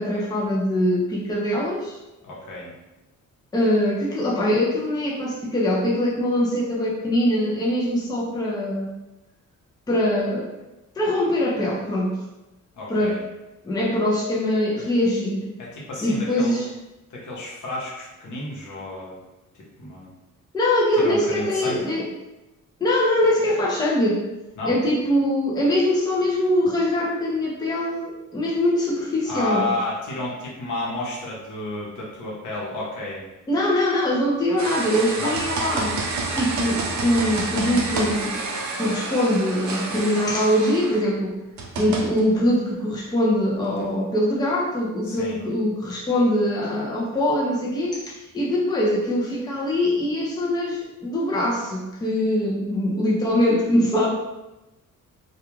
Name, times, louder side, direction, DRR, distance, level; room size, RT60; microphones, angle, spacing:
voice 1, 0.0-2.0 3.5-8.9 9.9-10.5 11.0-12.2 12.9-13.2 13.6-15.5 16.0-16.7 20.5-22.1 22.8-24.2 24.7-29.7 33.5-36.0 36.3-41.4 41.8-54.1, left 1 dB, 15° left, -4 dB, 0.5 m, -23 dB
voice 2, 2.2-2.7 12.7-13.2 15.6-16.6 17.1-19.2 19.5-20.1 21.0-21.8 24.6-24.8 29.3-33.2 35.2-35.4 45.0-45.4, left 2 dB, 65° left, -4 dB, 0.9 m, -31 dB
sound 1, 34.6-41.1 41.6-42.3 43.7-43.8, right 3 dB, 60° right, 0.5 m, -29 dB
2.3 x 2.3 x 3.0 m, 0.99 s
cardioid pair, 110°, 32 cm